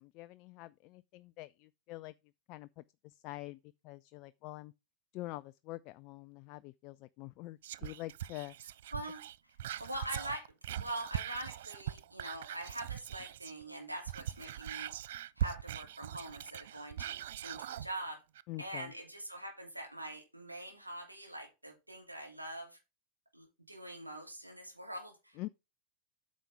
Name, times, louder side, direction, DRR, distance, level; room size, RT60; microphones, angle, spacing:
voice 1, 0.0-2.1 2.5-4.7 5.1-8.6 18.5-18.9 25.4-25.5, left 19 dB, 40° left, 0.3 m, -46 dB
Whispering, 7.6-13.6 13.9-17.9 18.3-18.4, right 11 dB, 55° right, 0.4 m, -41 dB
voice 2, 8.9-9.2 9.8-14.9 15.4-18.2 18.6-22.8 23.3-25.4, right 1 dB, 85° right, 2.8 m, -44 dB
8.9 x 6.2 x 3.5 m
figure-of-eight pair, 90°, 0 cm